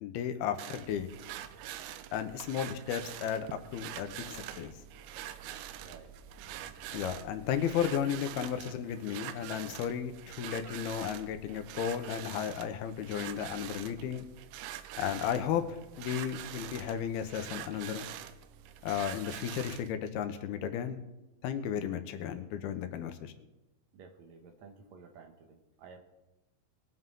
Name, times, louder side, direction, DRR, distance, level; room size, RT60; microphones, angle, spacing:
voice 1, 0.0-1.1 2.1-3.5 3.7-4.7 6.9-14.3 15.0-18.0 18.8-21.0 21.4-23.3, left 9 dB, 90° left, 8 dB, 2.9 m, -34 dB
sound 1, 0.6-19.9, right 12 dB, 90° right, 2.6 m, -45 dB
sound 2, 0.7-19.7, right 5 dB, 35° right, 1.7 m, -57 dB
voice 2, 5.8-6.1 6.4-6.8 23.9-26.0, right 5 dB, 65° right, 5 dB, 2.0 m, -53 dB
21.5 x 7.7 x 3.8 m, 1.0 s
omnidirectional pair, 4.3 m